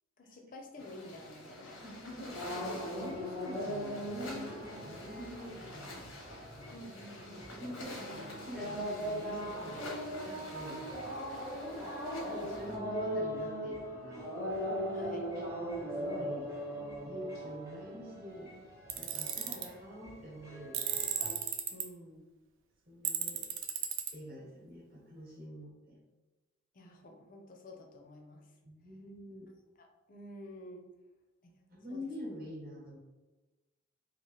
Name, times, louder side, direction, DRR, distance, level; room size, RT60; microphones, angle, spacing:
voice 1, 0.2-2.3 6.7-7.5 14.9-15.3 21.7-22.2 26.7-28.5 29.8-30.9 31.4-32.0, left 1 dB, 40° left, 2 dB, 0.5 m, -50 dB
sound 1, 0.8-12.8, left 1 dB, 85° left, 0.8 m, -48 dB
sound 2, 2.3-21.3, equal, 15° right, 0.6 m, -40 dB
voice 2, 2.4-6.1 7.3-9.8 10.2-10.8 12.3-14.3 15.6-16.5 17.0-18.5 19.0-20.9 22.9-23.4 24.1-26.0 28.6-29.5 31.7-33.0, left 1 dB, 45° right, -4 dB, 1.0 m, -46 dB
Tools, 18.9-19.7 20.7-21.8 23.0-24.1, right 9 dB, 70° right, 0.3 m, -34 dB
2.8 x 2.5 x 3.1 m, 1.2 s
head